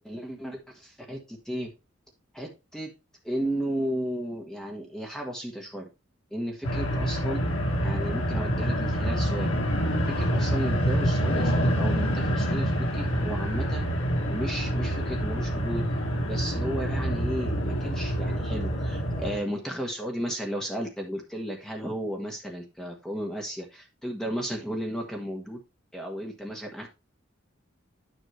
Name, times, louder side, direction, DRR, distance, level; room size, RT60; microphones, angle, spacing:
voice 1, 0.0-1.7 2.3-2.9 3.2-5.9 6.3-7.5 7.8-9.5 10.1-13.9 14.3-15.9 16.3-25.6 25.9-26.9, equal, 5° left, 1 dB, 1.5 m, -34 dB
sound 1, 6.6-19.4, equal, 80° left, 1.8 m, -27 dB
9.5 x 5.9 x 3.3 m, 0.26 s
head